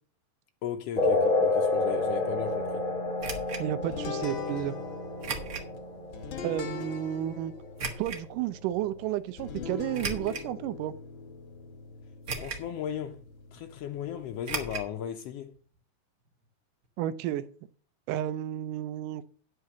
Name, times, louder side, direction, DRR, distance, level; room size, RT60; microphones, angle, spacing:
voice 1, 0.6-2.8 12.3-13.2 13.5-15.5, left 9 dB, 85° left, 1.3 m, -36 dB
sound 1, 1.0-8.0, left 2 dB, 35° left, 1.5 m, -30 dB
sound 2, 3.2-3.6 5.2-5.7 6.3-6.4 7.8-8.2 9.9-10.5 11.1-11.2 12.3-12.7 13.0-13.1 14.4-14.9 15.2-15.3 15.5-15.6, right 4 dB, 45° right, 1.1 m, -35 dB
voice 2, 3.6-4.8 6.4-7.5 8.0-10.9 17.0-17.5 18.1-19.2, right 12 dB, 90° right, 2.3 m, -32 dB
sound 3, 3.8-14.5, left 6 dB, 65° left, 1.2 m, -42 dB
9.7 x 6.6 x 6.0 m
omnidirectional pair, 3.7 m